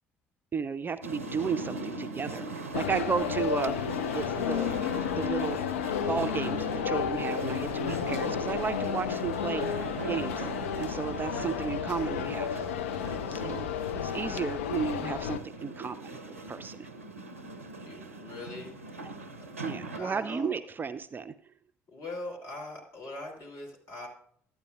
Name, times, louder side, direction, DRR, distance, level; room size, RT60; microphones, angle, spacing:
voice 1, 0.5-4.8 5.2-5.7 6.1-9.6 10.0-10.5 10.8-12.6 13.3-13.7 13.9-16.9 19.6-21.3, right 6 dB, 30° right, 12 dB, 0.4 m, -33 dB
sound 1, 1.0-20.0, right 2 dB, 85° right, 0.5 m, -40 dB
sound 2, 2.7-15.4, left 8 dB, 70° left, 0.4 m, -32 dB
voice 2, 17.9-18.7 19.9-20.5 21.9-24.1, left 2 dB, 50° left, -2 dB, 3.0 m, -41 dB
12.0 x 9.3 x 2.4 m, 0.63 s
figure-of-eight pair, 50°, 7 cm